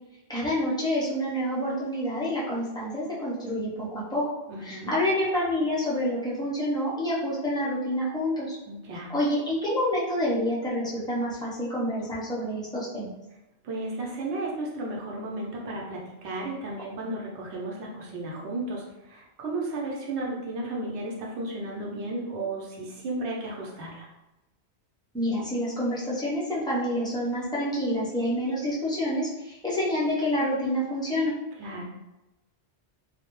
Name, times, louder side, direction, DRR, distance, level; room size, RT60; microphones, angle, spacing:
voice 1, 0.3-4.2 4.6-8.6 9.1-13.1 25.1-31.3, equal, 5° left, -7 dB, 0.3 m, -28 dB
voice 2, 4.5-4.9 8.7-9.1 13.6-24.1 31.6-31.9, right 2 dB, 75° right, -2 dB, 0.9 m, -34 dB
2.2 x 2.0 x 2.9 m, 0.97 s
omnidirectional pair, 1.2 m